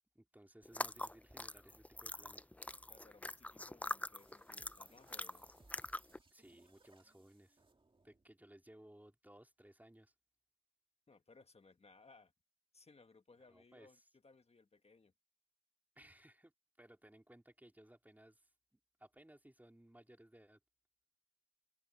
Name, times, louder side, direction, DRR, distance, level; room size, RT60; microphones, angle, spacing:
voice 1, 0.2-2.5 6.3-7.6 8.0-10.1 13.4-14.1 16.0-16.5 16.8-20.6, right 1 dB, 15° right, 3.6 m, -61 dB
sound 1, 0.7-6.2, left 1 dB, 10° left, 0.3 m, -44 dB
voice 2, 2.9-5.6 11.1-12.3 12.7-15.1, left 3 dB, 65° left, 1.5 m, -64 dB
sound 2, 4.2-8.3, right 2 dB, 45° right, 2.0 m, -69 dB
open air
wide cardioid pair, 50°, 12 cm